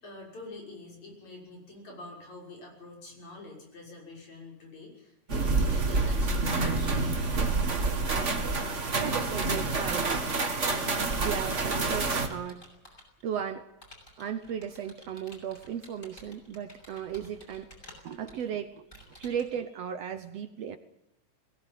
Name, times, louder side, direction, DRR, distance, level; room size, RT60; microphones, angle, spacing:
voice 1, 0.0-7.4, left 2 dB, 65° left, -1 dB, 7.5 m, -46 dB
sound 1, 5.3-12.3, right 3 dB, 25° right, 1.9 m, -28 dB
voice 2, 9.0-10.3 11.2-12.6 13.2-13.7 14.2-17.7 18.0-20.8, right 8 dB, 65° right, 9 dB, 1.8 m, -36 dB
Computer keyboard, 10.3-13.2 13.8-19.6, equal, 15° left, 6.4 m, -53 dB
22.0 x 17.5 x 9.2 m, 0.89 s
omnidirectional pair, 3.6 m